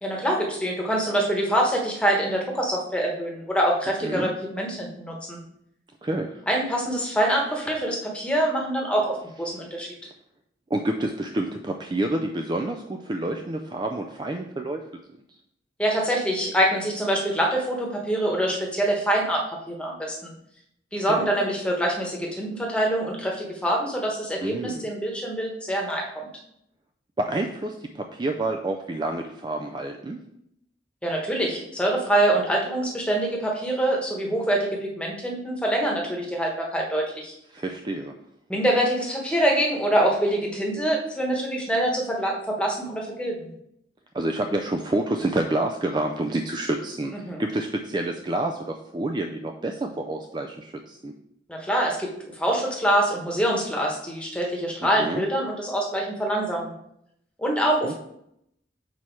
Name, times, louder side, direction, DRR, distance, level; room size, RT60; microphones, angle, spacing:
voice 1, 0.0-5.4 6.5-9.9 15.8-20.3 20.9-26.3 31.0-34.7 34.9-37.3 38.5-43.5 47.2-47.4 51.5-52.1 52.4-56.7 57.4-57.9, right 1 dB, 5° left, -1 dB, 1.1 m, -25 dB
voice 2, 6.0-6.4 10.7-14.8 21.1-21.3 24.4-24.9 27.2-30.2 37.5-38.1 44.1-47.1 47.4-51.1 54.8-55.2 57.8-57.9, right 2 dB, 25° right, 4 dB, 0.3 m, -28 dB
6.3 x 4.3 x 4.6 m, 0.76 s
head